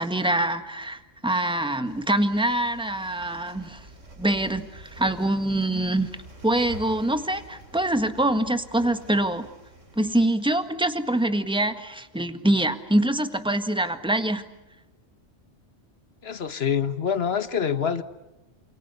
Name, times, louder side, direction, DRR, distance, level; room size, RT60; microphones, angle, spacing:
voice 1, 0.0-3.8 4.2-6.1 6.4-9.5 9.9-14.4, right 1 dB, 5° right, 1.6 m, -24 dB
sound 1, 1.8-10.3, right 2 dB, 90° right, 4.1 m, -47 dB
voice 2, 16.2-18.0, left 7 dB, 55° left, 1.6 m, -26 dB
28.0 x 28.0 x 6.9 m
omnidirectional pair, 1.2 m